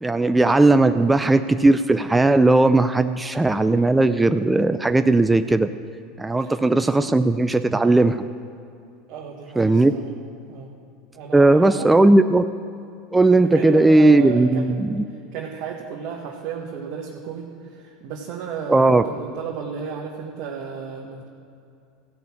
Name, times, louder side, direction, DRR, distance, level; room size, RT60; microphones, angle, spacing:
voice 1, 0.0-5.7 6.2-8.2 9.6-9.9 11.3-12.4 13.1-15.0 18.7-19.0, right 2 dB, 10° right, 9 dB, 0.5 m, -17 dB
voice 2, 9.1-10.1 10.5-10.7 11.1-11.9 13.4-14.7 15.3-21.3, right 6 dB, 60° right, -2 dB, 1.5 m, -33 dB
15.0 x 6.1 x 8.6 m, 2.5 s
hypercardioid pair, 90°, 0 cm